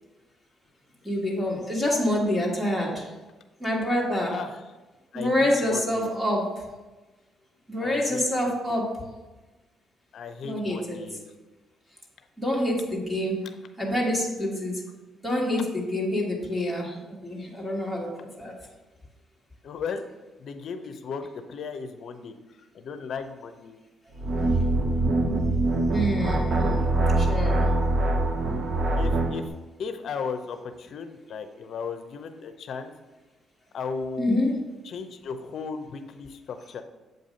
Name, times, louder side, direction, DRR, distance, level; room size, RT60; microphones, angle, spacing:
voice 1, 1.0-3.1 3.6-4.4 5.1-6.6 7.7-9.0 10.4-11.0 12.4-13.5 13.8-14.8 15.2-18.1 18.4-18.5 25.9-26.6 27.2-27.6 34.2-34.6, left 1 dB, 5° right, -3 dB, 1.5 m, -26 dB
voice 2, 4.3-4.6 5.1-6.1 7.8-8.8 10.1-11.3 19.6-20.1 20.4-22.3 22.7-23.8 29.0-29.5 29.8-32.9 33.7-34.4 34.8-36.8, left 5 dB, 65° left, 8 dB, 0.6 m, -36 dB
sound 1, 24.2-29.4, right 2 dB, 60° right, 0.8 m, -23 dB
7.8 x 2.6 x 5.1 m, 1.2 s
cardioid pair, 90°, 0 cm